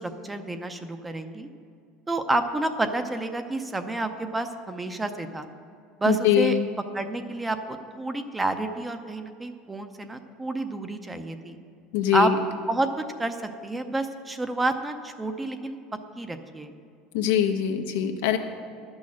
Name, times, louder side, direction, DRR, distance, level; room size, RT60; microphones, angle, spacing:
voice 1, 0.0-1.5 2.1-5.5 6.0-6.6 6.9-11.6 12.1-12.3 12.7-15.8 16.2-16.7, right 2 dB, 10° right, 8 dB, 0.6 m, -29 dB
voice 2, 6.1-6.7 11.9-12.4 17.1-18.4, left 10 dB, 85° left, 5 dB, 0.9 m, -23 dB
11.0 x 6.3 x 7.4 m, 2.5 s
supercardioid pair, 135°, 0 cm